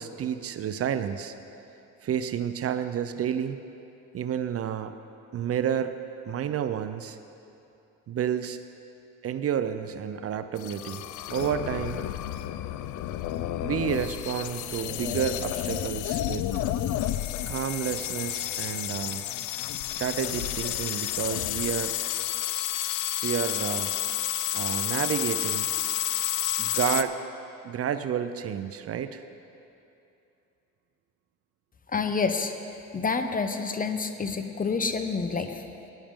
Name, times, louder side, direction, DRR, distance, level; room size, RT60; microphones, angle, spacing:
voice 1, 0.0-1.4 2.0-3.6 4.1-4.9 5.3-6.0 6.3-7.2 8.1-8.6 9.2-12.0 13.6-16.6 17.5-19.2 20.0-21.9 23.2-23.9 24.5-25.9 26.6-27.2 27.6-29.3, right 9 dB, 50° right, 10 dB, 0.5 m, -30 dB
sound 1, 10.6-27.0, left 13 dB, 80° left, 0.5 m, -30 dB
voice 2, 31.9-32.5 32.9-35.6, left 4 dB, 30° left, 8 dB, 0.7 m, -28 dB
13.5 x 10.5 x 3.6 m, 2.8 s
cardioid pair, 90°, 30 cm